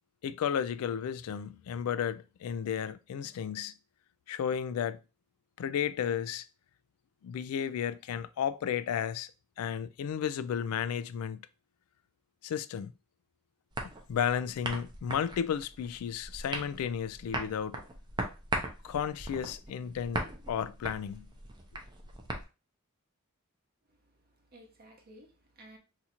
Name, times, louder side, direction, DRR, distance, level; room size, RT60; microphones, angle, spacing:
voice 1, 0.2-3.7 4.3-5.0 5.6-6.5 7.2-9.3 9.6-11.4 12.4-12.9 14.1-17.8 18.8-21.3, left 8 dB, 90° left, 0.3 m, -33 dB
sound 1, 13.7-22.4, right 2 dB, 20° right, 0.5 m, -39 dB
voice 2, 23.9-25.8, right 1 dB, 45° right, 0.9 m, -56 dB
2.7 x 2.4 x 4.2 m
head